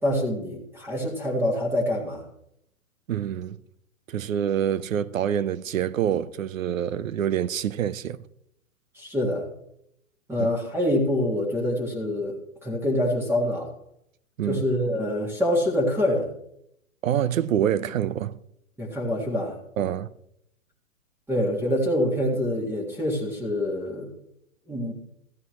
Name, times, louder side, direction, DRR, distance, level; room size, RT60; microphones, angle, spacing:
voice 1, 0.0-2.2 8.9-9.5 10.3-13.7 14.5-16.3 18.8-19.6 21.3-24.1 24.7-24.9, left 1 dB, 5° right, 1.7 m, -25 dB
voice 2, 3.1-3.6 4.1-8.2 10.4-10.5 14.4-14.6 17.0-18.4 19.8-20.1, right 10 dB, 65° right, 0.8 m, -26 dB
14.5 x 11.0 x 3.1 m
hypercardioid pair, 150°, 43 cm